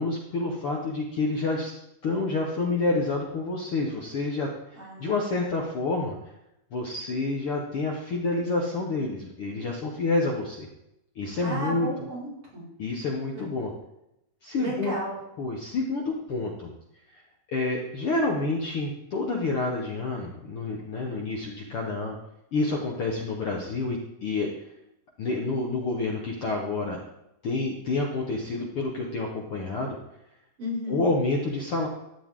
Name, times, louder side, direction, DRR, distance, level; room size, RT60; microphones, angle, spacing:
voice 1, 0.0-1.7 2.0-6.2 6.7-10.7 11.2-11.9 12.8-13.7 14.4-15.0 15.4-16.7 17.1-17.2 17.5-22.2 22.5-24.5 25.2-27.0 27.4-30.0 30.9-31.9, left 3 dB, 55° left, 0 dB, 1.9 m, -28 dB
voice 2, 4.8-5.5 11.4-12.7 13.3-13.4 14.6-15.2 30.6-31.0, equal, 45° right, -7 dB, 6.2 m, -34 dB
13.5 x 10.0 x 3.8 m, 0.84 s
omnidirectional pair, 3.7 m